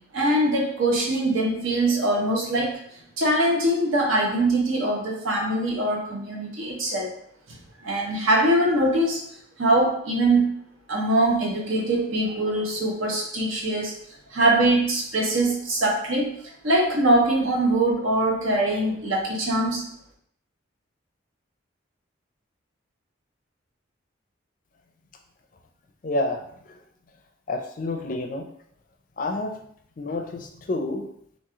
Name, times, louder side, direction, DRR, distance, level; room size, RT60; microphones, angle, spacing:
voice 1, 0.1-2.8 3.2-7.1 7.5-9.2 9.6-10.5 10.9-14.0 14.3-16.3 16.6-19.9, right 1 dB, 85° right, -1 dB, 0.9 m, -22 dB
voice 2, 26.0-26.4 27.5-28.4 29.2-29.5 30.0-31.0, left 2 dB, 40° left, 4 dB, 0.4 m, -28 dB
3.0 x 2.6 x 3.5 m, 0.67 s
head